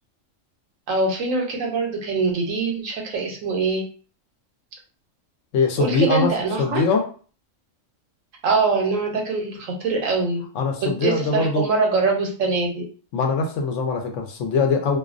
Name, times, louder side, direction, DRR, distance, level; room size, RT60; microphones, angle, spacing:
voice 1, 0.9-3.8 5.8-6.8 8.4-10.4 10.8-12.9, right 3 dB, 80° right, 0 dB, 1.1 m, -23 dB
voice 2, 5.5-6.3 6.6-7.0 10.5-11.7 13.1-15.0, left 4 dB, 70° left, 3 dB, 0.9 m, -22 dB
2.6 x 2.0 x 2.4 m, 0.40 s
omnidirectional pair, 1.4 m